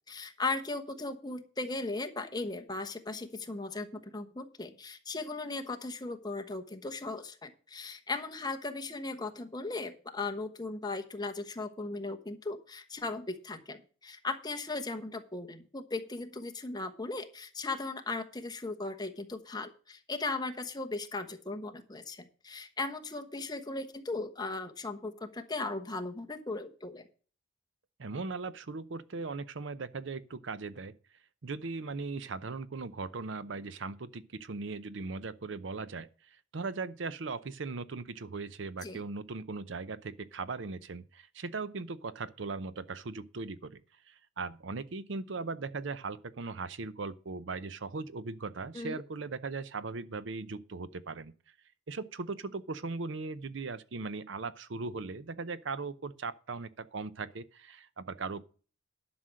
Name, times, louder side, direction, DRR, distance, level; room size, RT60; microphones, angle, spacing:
voice 1, 0.1-27.1 38.8-39.0 48.7-49.0, left 3 dB, 20° left, 1.1 m, -37 dB
voice 2, 28.0-30.9 31.4-43.8 44.1-51.3 51.9-58.4, right 4 dB, 65° right, 0.6 m, -39 dB
11.5 x 6.1 x 6.3 m
head